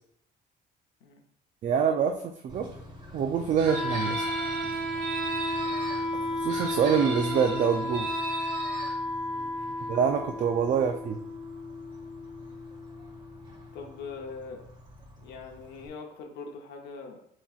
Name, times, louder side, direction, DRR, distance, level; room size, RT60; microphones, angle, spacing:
voice 1, 1.6-2.7 3.1-4.2 6.3-8.1 9.9-11.2, right 7 dB, 50° right, 4 dB, 0.5 m, -26 dB
Bird / Train, 2.5-15.9, left 1 dB, 25° right, 1.3 m, -48 dB
Wind instrument woodwind instrument, 3.6-13.6, left 1 dB, ahead, 0.9 m, -33 dB
Chicken rooster, 3.6-6.0 6.5-8.9, right 4 dB, 85° right, 1.3 m, -38 dB
voice 2, 9.3-9.9 13.7-14.6 15.2-17.2, left 4 dB, 80° left, 2 dB, 0.8 m, -42 dB
7.3 x 2.9 x 2.4 m, 0.70 s
cardioid pair, 110°, 17 cm